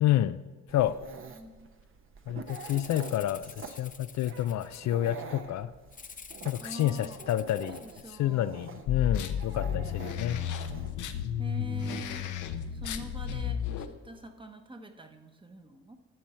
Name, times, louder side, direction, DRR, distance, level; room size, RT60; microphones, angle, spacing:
voice 1, 0.0-0.4 0.7-1.0 2.3-5.7 6.5-10.4, left 12 dB, 65° left, 13 dB, 0.5 m, -29 dB
Dog, 0.7-10.9, right 5 dB, 45° right, 1.0 m, -47 dB
voice 2, 1.3-1.7 6.6-8.6 11.4-12.3 12.7-16.0, right 2 dB, 15° right, 6 dB, 1.1 m, -45 dB
Rattle (instrument), 2.5-5.1 5.9-8.1, left 6 dB, 25° left, 0.6 m, -48 dB
sound 1, 8.9-13.9, left 9 dB, 80° left, 0.8 m, -33 dB
12.0 x 7.0 x 4.4 m, 1.4 s
cardioid pair, 90°, 30 cm